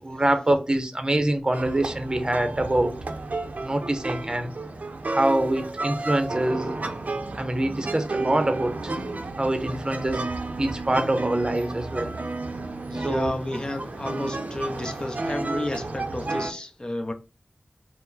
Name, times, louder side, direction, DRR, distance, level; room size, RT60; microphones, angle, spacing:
voice 1, 0.0-2.9 3.6-4.5 5.1-6.8 7.3-8.9 9.4-10.3 10.6-12.1 12.9-13.3, right 1 dB, 30° right, 0.7 m, -25 dB
sound 1, 1.5-16.5, right 2 dB, 75° right, 0.6 m, -32 dB
voice 2, 12.9-17.1, left 1 dB, 35° left, 0.6 m, -31 dB
4.5 x 2.0 x 3.9 m
wide cardioid pair, 55°, 3 cm